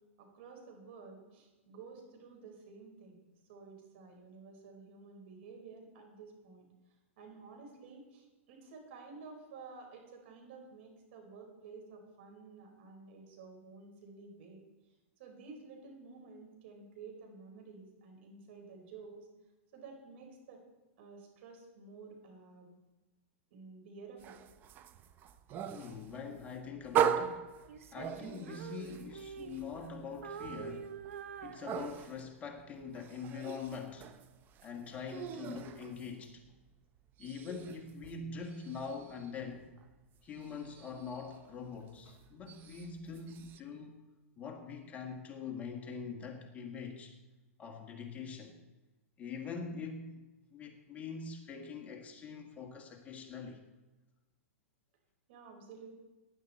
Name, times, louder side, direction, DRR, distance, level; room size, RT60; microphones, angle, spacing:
voice 1, 0.2-3.2 3.5-6.7 7.2-14.6 15.2-19.2 19.7-20.6 21.0-22.7 23.5-24.4 55.3-55.9, right 4 dB, 55° right, 3 dB, 4.4 m, -52 dB
sound 1, 24.2-36.7 37.0-43.6, right 9 dB, 25° right, 0.7 m, -40 dB
voice 2, 25.7-27.5 27.9-31.0 31.4-34.1 34.6-36.4 37.2-39.7 40.2-44.1 44.4-47.2 47.6-48.5 49.2-50.2 50.5-53.6, left 5 dB, 20° left, 3 dB, 1.6 m, -43 dB
Female singing, 27.7-29.9 30.2-32.3, right 7 dB, 75° right, 0.9 m, -46 dB
18.5 x 10.5 x 4.2 m, 1.1 s
hypercardioid pair, 145°, 7 cm